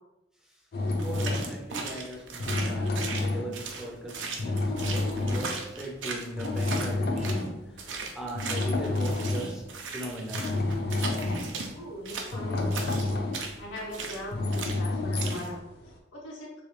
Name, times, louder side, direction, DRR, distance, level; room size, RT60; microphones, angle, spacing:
sound 1, 0.7-1.7 2.3-3.9 4.4-5.6 6.4-7.6 8.3-9.6 10.1-15.9, left 2 dB, 55° left, 0.4 m, -30 dB
voice 1, 1.0-7.5 7.8-9.6 9.9-10.5, right 1 dB, 5° right, -2 dB, 0.4 m, -39 dB
sound 2, 1.0-7.5 7.8-11.7 12.1-14.2 14.5-14.8 15.2-15.5, right 4 dB, 70° right, 0.5 m, -37 dB
voice 2, 11.7-16.6, left 1 dB, 85° left, -3 dB, 1.0 m, -41 dB
3.0 x 2.3 x 3.1 m, 0.94 s
head